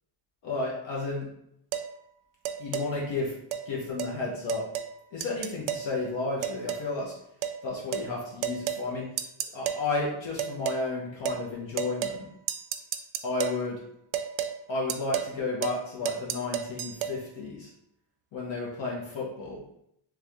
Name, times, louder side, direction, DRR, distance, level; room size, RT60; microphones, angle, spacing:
voice 1, 0.4-1.3 2.6-3.3 3.7-4.7 5.1-7.1 7.6-9.1 9.5-12.3 13.2-13.8 14.7-17.7 18.3-19.6, left 3 dB, 65° left, -4 dB, 1.1 m, -32 dB
sound 1, 1.7-1.9 2.5-2.9 3.5-3.7 4.0-4.1 4.5-4.9 5.2-5.9 6.4-6.9 7.4-7.6 7.9-8.1 8.4-8.8 9.2-9.8 10.4-10.8 11.3-11.4 11.8-12.2 12.5-13.6 14.1-14.6 14.9-15.3 15.6-15.8 16.1-17.2, right 10 dB, 75° right, 0.5 m, -32 dB
3.5 x 3.3 x 3.4 m, 0.75 s
cardioid pair, 145°, 49 cm